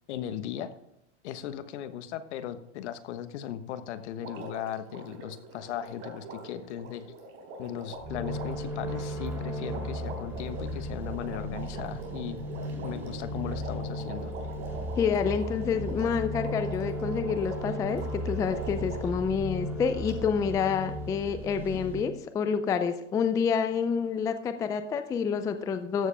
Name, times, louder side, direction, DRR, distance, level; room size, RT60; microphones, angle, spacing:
voice 1, 0.1-0.7 1.2-7.0 7.6-12.4 12.8-14.3, left 10 dB, 70° left, 11 dB, 1.3 m, -37 dB
Water, 4.2-19.2 20.1-20.2, right 2 dB, 35° right, 3.8 m, -44 dB
sound 1, 8.0-22.0, equal, 5° right, 4.5 m, -35 dB
voice 2, 15.0-26.1, left 6 dB, 10° left, 10 dB, 0.3 m, -28 dB
14.0 x 7.4 x 3.4 m, 0.82 s
supercardioid pair, 135°, 36 cm